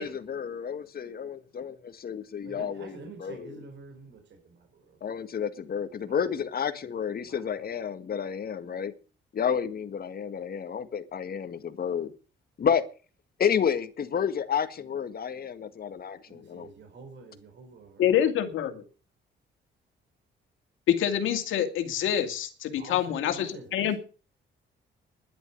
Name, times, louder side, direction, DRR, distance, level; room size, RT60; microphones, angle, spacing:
voice 1, 0.0-3.6 5.0-8.9 9.3-12.1 12.6-12.8 13.4-16.7, left 7 dB, 50° left, 1.8 m, -30 dB
voice 2, 2.4-5.0 6.1-6.2 7.3-7.8 16.3-18.1 22.8-24.0, right 4 dB, 65° right, 4.4 m, -47 dB
voice 3, 18.0-18.8 20.9-24.0, left 10 dB, 85° left, 2.5 m, -26 dB
11.5 x 11.0 x 6.9 m
cardioid pair, 90°, 20 cm